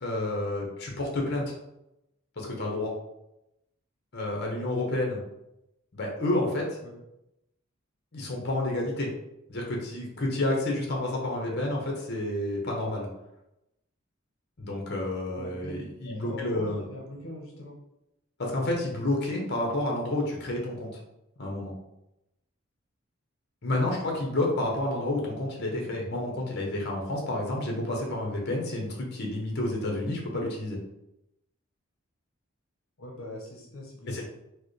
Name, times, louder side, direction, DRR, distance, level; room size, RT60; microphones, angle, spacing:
voice 1, 0.0-1.5 2.4-2.9 4.1-5.2 5.9-6.8 8.1-9.1 9.5-13.1 14.6-16.8 18.4-21.0 21.4-21.7 23.6-30.8 34.1-34.2, left 1 dB, 50° left, -1 dB, 0.8 m, -30 dB
voice 2, 15.4-15.7 16.0-17.8 33.0-34.2, left 1 dB, 80° left, -1 dB, 0.7 m, -42 dB
4.5 x 2.1 x 3.1 m, 0.87 s
head